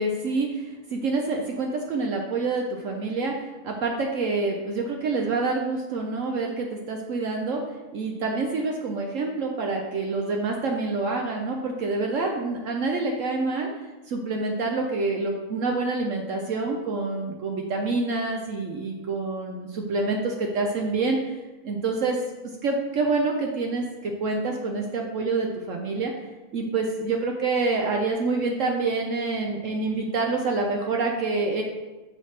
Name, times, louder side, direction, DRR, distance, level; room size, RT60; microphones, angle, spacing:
voice 1, 0.0-3.3 3.6-7.6 7.9-13.7 14.1-22.2 22.6-26.1 26.5-31.6, right 3 dB, 60° right, 1 dB, 1.0 m, -27 dB
6.4 x 5.8 x 3.3 m, 1.1 s
omnidirectional pair, 1.6 m